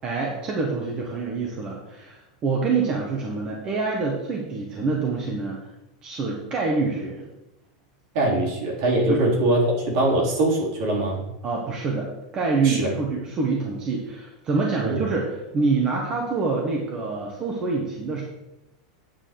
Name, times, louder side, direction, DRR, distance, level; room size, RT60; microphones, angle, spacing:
voice 1, 0.0-5.6 6.0-7.2 9.1-9.2 11.4-18.2, right 4 dB, 20° right, -1 dB, 1.2 m, -26 dB
voice 2, 8.1-11.2 12.6-12.9 14.8-15.0, right 1 dB, 55° right, -2 dB, 3.5 m, -22 dB
9.0 x 4.9 x 7.5 m, 0.93 s
supercardioid pair, 175°, 4 cm